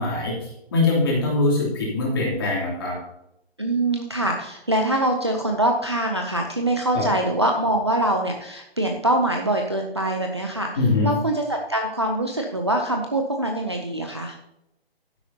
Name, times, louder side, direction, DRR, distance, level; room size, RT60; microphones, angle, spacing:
voice 1, 0.0-3.0 6.9-7.0 10.8-11.1, left 2 dB, 20° left, -4 dB, 2.8 m, -22 dB
voice 2, 3.6-10.7 11.0-14.4, right 1 dB, 25° right, 2 dB, 0.6 m, -24 dB
12.0 x 9.9 x 2.8 m, 0.81 s
hypercardioid pair, 175°, 32 cm